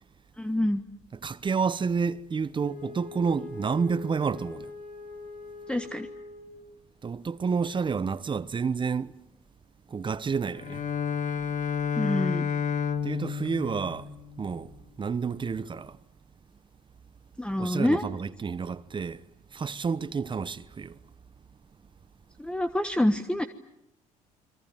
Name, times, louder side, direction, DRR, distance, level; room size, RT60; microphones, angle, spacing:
voice 1, 0.4-0.8 5.7-6.1 12.0-12.5 17.4-18.0 22.4-23.4, left 1 dB, 5° left, 1.3 m, -26 dB
voice 2, 1.1-4.7 7.0-9.1 9.9-10.8 13.0-14.1 14.4-14.7 15.0-16.0 17.6-19.2 19.5-21.0, right 5 dB, 30° right, 1.0 m, -29 dB
Wind instrument woodwind instrument, 2.6-6.8, left 4 dB, 70° left, 7.5 m, -43 dB
Bowed string instrument, 10.5-14.7, left 7 dB, 55° left, 1.9 m, -30 dB
29.0 x 23.0 x 9.0 m
supercardioid pair, 80°, 16 cm